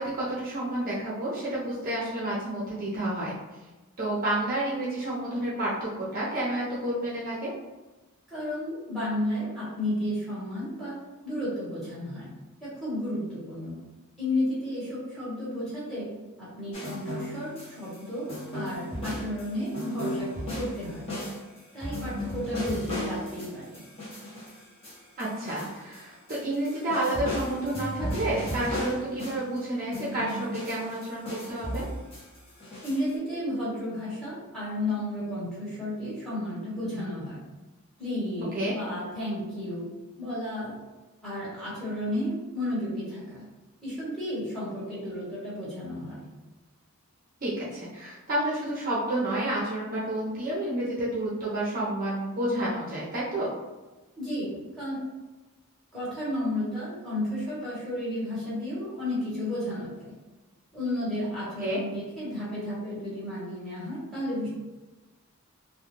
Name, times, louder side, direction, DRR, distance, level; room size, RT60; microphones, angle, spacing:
voice 1, 0.0-3.3 4.0-7.5 18.9-19.2 25.2-31.9 38.5-38.7 47.4-53.5 61.6-61.8, right 1 dB, 40° right, -7 dB, 0.5 m, -30 dB
voice 2, 8.3-11.0 11.2-12.3 12.6-13.7 14.2-16.1 16.4-20.3 20.5-21.0 21.7-23.8 32.8-37.4 38.0-39.9 40.2-40.8 41.2-43.4 43.8-46.1 54.2-54.5 54.8-55.0 55.9-60.1 60.7-64.5, left 1 dB, ahead, -9 dB, 1.0 m, -32 dB
sound 1, 16.7-18.0 18.3-26.0 26.3-29.6 29.9-33.1, equal, 25° left, 0.8 m, -35 dB
2.2 x 2.1 x 3.0 m, 1.2 s
head